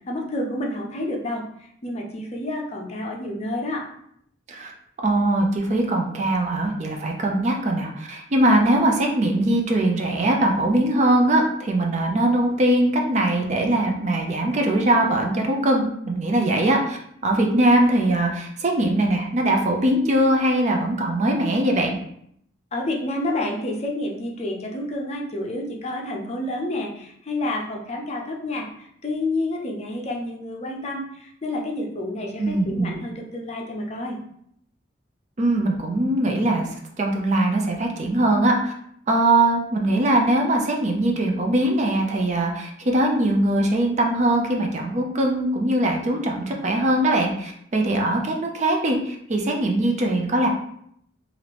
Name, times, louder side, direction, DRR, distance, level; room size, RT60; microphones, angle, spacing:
voice 1, 0.1-3.9 22.7-34.2, left 1 dB, 35° left, 0 dB, 0.5 m, -29 dB
voice 2, 5.0-21.9 32.4-33.0 35.4-38.7 39.1-50.5, right 1 dB, 35° right, 2 dB, 0.4 m, -21 dB
3.3 x 2.5 x 2.9 m, 0.70 s
head